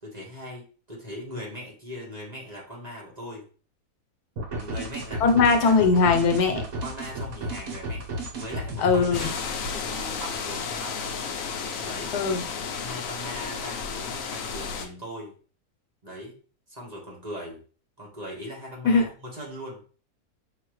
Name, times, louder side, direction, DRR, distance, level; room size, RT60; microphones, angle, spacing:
voice 1, 0.0-3.4 4.5-5.6 6.8-8.1 8.3-9.3 9.6-11.3 11.8-12.1 12.7-15.3 16.0-16.4 16.7-17.6 18.0-19.8, equal, 25° right, -3 dB, 1.5 m, -39 dB
sound 1, 4.4-9.4, right 1 dB, 65° right, 1.4 m, -34 dB
voice 2, 5.2-6.7 8.8-9.3 12.1-12.4 18.8-19.1, left 4 dB, 85° left, 4 dB, 1.3 m, -20 dB
sound 2, 9.1-14.9, left 5 dB, 65° left, 1.0 m, -33 dB
5.5 x 2.8 x 3.1 m, 0.39 s
omnidirectional pair, 1.6 m